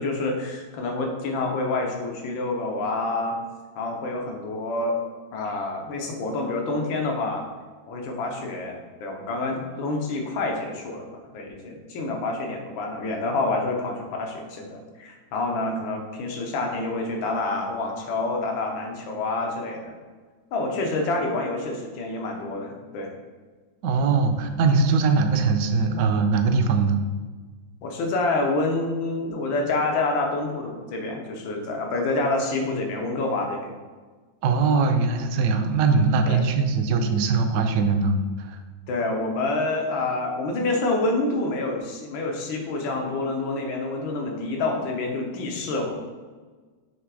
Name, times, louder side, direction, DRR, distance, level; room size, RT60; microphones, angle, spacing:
voice 1, 0.0-3.4 3.8-5.0 5.3-7.4 7.9-11.1 11.3-19.9 20.5-23.1 27.8-33.7 36.3-36.4 38.9-45.9, left 2 dB, 90° left, 2 dB, 1.6 m, -27 dB
voice 2, 23.8-27.0 34.4-38.6, right 4 dB, 70° right, 6 dB, 0.9 m, -21 dB
6.2 x 3.3 x 4.7 m, 1.4 s
omnidirectional pair, 2.1 m